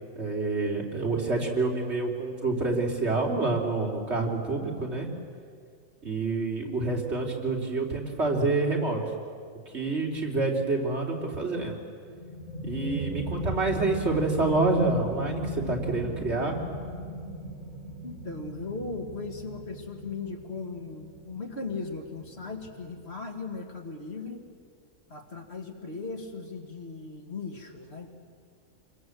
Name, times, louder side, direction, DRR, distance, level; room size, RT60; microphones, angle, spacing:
voice 1, 0.1-5.1 6.0-9.0 9.7-11.8 12.6-16.6, right 3 dB, 55° right, -1 dB, 3.6 m, -27 dB
sound 1, 12.0-23.4, right 1 dB, 75° right, 3.5 m, -37 dB
voice 2, 18.0-24.4 25.1-28.1, left 4 dB, 50° left, 3 dB, 2.5 m, -38 dB
26.5 x 22.5 x 7.8 m, 2.2 s
omnidirectional pair, 1.4 m